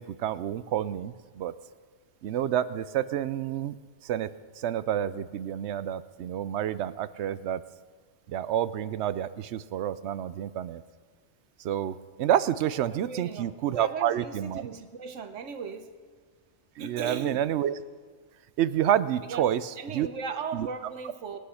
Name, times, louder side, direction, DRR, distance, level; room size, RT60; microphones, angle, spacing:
voice 1, 0.0-1.5 2.2-3.8 4.0-4.3 4.6-7.6 8.3-10.8 11.6-14.7 16.8-17.8 18.6-20.1 20.5-20.7, right 11 dB, 70° right, 15 dB, 0.8 m, -29 dB
voice 2, 12.9-15.9 16.8-17.4 19.2-19.5 19.8-21.4, right 5 dB, 85° right, 8 dB, 1.3 m, -37 dB
21.0 x 8.5 x 5.7 m, 1.5 s
omnidirectional pair, 1.2 m